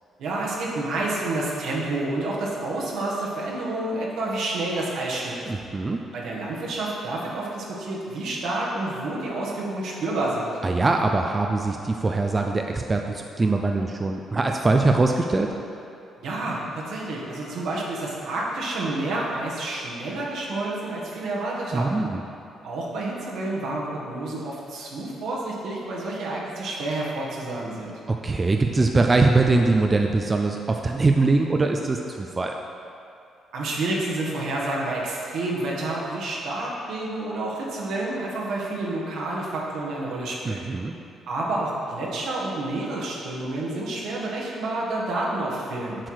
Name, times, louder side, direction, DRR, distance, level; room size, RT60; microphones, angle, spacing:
voice 1, 0.2-5.4 6.1-10.5 16.2-22.1 22.6-27.9 33.5-40.6 41.3-46.0, right 2 dB, 75° right, -4 dB, 1.4 m, -29 dB
voice 2, 5.5-6.0 10.6-15.5 21.7-22.2 28.1-32.5 40.4-40.9, right 3 dB, 25° right, 3 dB, 0.4 m, -22 dB
7.5 x 4.6 x 4.8 m, 2.6 s
cardioid pair, 90°, 0 cm